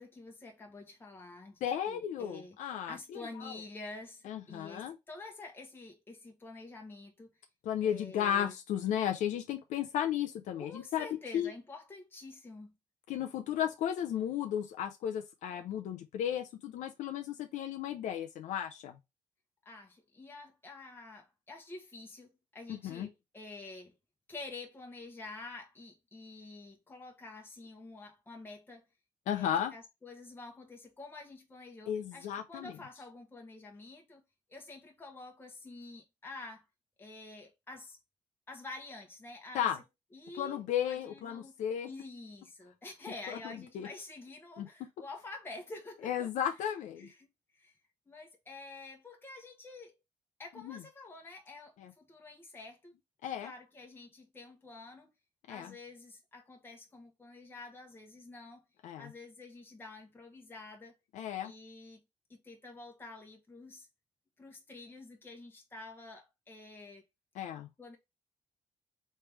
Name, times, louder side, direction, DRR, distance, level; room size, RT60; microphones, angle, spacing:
voice 1, 0.0-1.6 1.9-7.3 7.8-8.5 10.6-12.7 19.6-24.0 24.3-28.9 29.3-34.2 34.5-36.7 37.0-38.0 38.5-39.7 40.1-41.5 41.8-46.3 46.6-46.7 47.0-47.8 48.1-49.9 50.4-52.9 53.2-55.1 55.5-58.6 59.0-60.9 61.4-62.0 62.3-63.9 64.4-67.0 67.8-68.0, left 3 dB, 15° left, 0.9 m, -48 dB
voice 2, 1.6-3.5 4.3-5.0 7.6-11.1 11.3-11.5 13.1-19.0 22.7-23.1 29.3-29.7 31.9-32.7 39.5-39.8 40.4-41.9 43.3-43.9 44.6-44.7 46.0-47.1 50.6-50.8 51.8-51.9 53.2-53.5 55.5-55.7 58.8-59.1 61.1-61.5 67.4-67.7, left 10 dB, 85° left, 0.5 m, -34 dB
3.3 x 3.2 x 3.2 m
cardioid pair, 100°, 13 cm